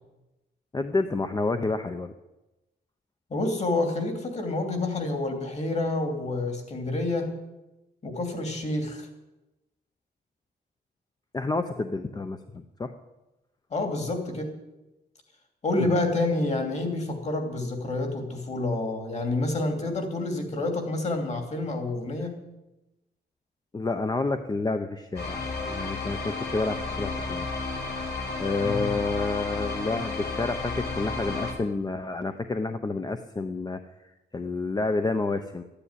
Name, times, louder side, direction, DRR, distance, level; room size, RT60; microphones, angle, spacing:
voice 1, 0.7-2.1 11.3-12.9 15.8-15.9 22.2-22.3 23.7-27.5 28.4-35.6, left 3 dB, 20° left, 8 dB, 0.7 m, -29 dB
voice 2, 3.3-7.4 8.0-9.1 13.7-14.5 15.6-22.5 28.6-28.9, left 2 dB, 40° left, 4 dB, 3.0 m, -28 dB
sound 1, 25.2-31.5, left 3 dB, 70° left, 5.8 m, -32 dB
13.5 x 9.9 x 9.9 m, 0.99 s
wide cardioid pair, 170°, 18 cm